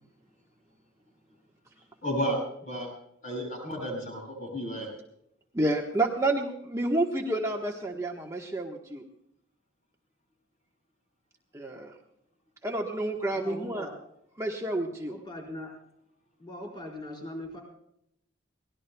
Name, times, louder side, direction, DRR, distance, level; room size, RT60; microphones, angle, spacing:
voice 1, 2.0-2.9 3.2-4.9, equal, 40° left, 1 dB, 7.3 m, -32 dB
voice 2, 5.5-9.0 11.5-11.9 12.6-13.9 14.4-15.1, right 2 dB, 15° right, 0 dB, 1.2 m, -29 dB
voice 3, 13.3-14.0 15.1-15.7 16.4-17.6, left 1 dB, 25° left, 0 dB, 4.6 m, -40 dB
24.0 x 18.5 x 2.3 m, 0.76 s
head